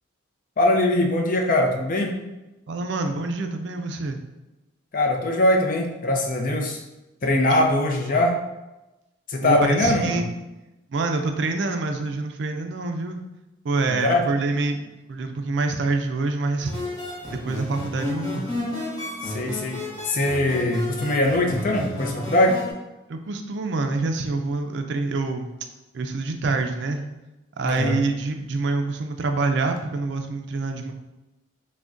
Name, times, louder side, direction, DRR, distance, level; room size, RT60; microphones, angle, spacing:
voice 1, 0.6-2.2 4.9-6.8 7.2-8.4 9.3-10.2 13.9-14.3 19.2-19.8 20.0-22.6 27.6-28.0, left 1 dB, 40° left, 2 dB, 0.5 m, -22 dB
voice 2, 2.7-4.2 7.5-7.6 9.4-10.3 10.9-13.2 13.6-16.7 17.3-18.5 23.1-25.5 25.9-27.0 27.6-30.9, right 3 dB, 60° right, 5 dB, 0.4 m, -26 dB
sound 1, 16.6-22.7, left 1 dB, 20° left, 0.8 m, -32 dB
5.9 x 2.1 x 2.5 m, 1.0 s
head